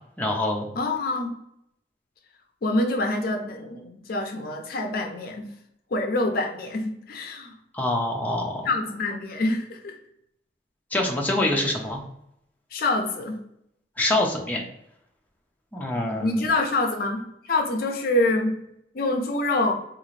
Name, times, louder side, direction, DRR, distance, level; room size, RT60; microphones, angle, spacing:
voice 1, 0.2-0.7 7.7-8.7 10.9-12.0 14.0-14.7 15.7-16.4, left 1 dB, 10° left, -1 dB, 0.6 m, -25 dB
voice 2, 0.8-1.4 2.6-5.5 5.9-7.6 8.6-10.0 12.7-13.4 15.9-18.6 18.9-19.7, left 2 dB, 55° left, 4 dB, 0.5 m, -26 dB
3.8 x 2.5 x 3.1 m, 0.77 s
head